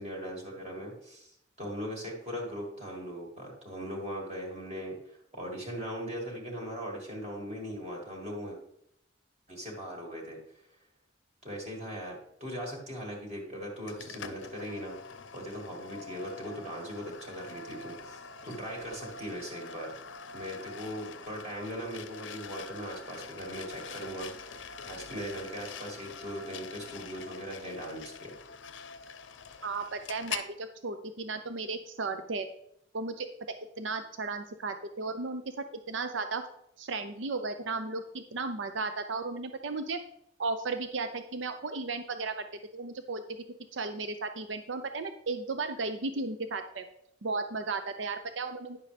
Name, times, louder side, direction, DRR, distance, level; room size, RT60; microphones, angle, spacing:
voice 1, 0.0-8.6 9.5-10.4 11.4-20.0 20.3-28.3, equal, 35° right, -1 dB, 2.3 m, -39 dB
sound 1, 13.9-30.5, left 5 dB, 80° left, 0.7 m, -44 dB
voice 2, 29.6-32.5 32.9-35.4 35.9-36.4 36.8-40.0 40.4-42.3 42.7-43.2 43.7-46.8 47.2-48.8, right 3 dB, 80° right, 8 dB, 0.6 m, -35 dB
10.5 x 7.4 x 3.4 m, 0.73 s
head